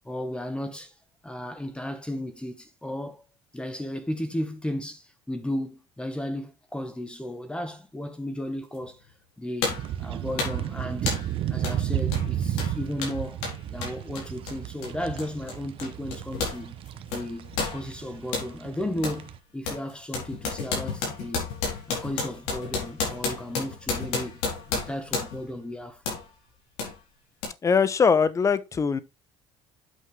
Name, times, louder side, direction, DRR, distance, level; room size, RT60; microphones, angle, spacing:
voice 1, 0.0-0.9 1.2-3.2 3.5-9.0 9.4-11.1 11.5-13.4 13.7-16.7 17.1-21.5 21.9-24.4 24.7-26.0, left 1 dB, 10° left, 1.2 m, -34 dB
sound 1, 8.7-8.9 9.6-9.9 10.4-10.7 11.1-11.3 11.6-11.8 12.1-16.6 16.9-18.5 19.0-19.2 19.6-25.5 26.0-26.2 26.8-26.9 27.4-27.5, left 5 dB, 85° left, 4.2 m, -31 dB
sound 2, 9.7-19.4, right 10 dB, 55° right, 0.9 m, -33 dB
voice 2, 27.6-29.0, left 5 dB, 30° left, 0.9 m, -21 dB
8.6 x 5.7 x 3.4 m
supercardioid pair, 100°, 11 cm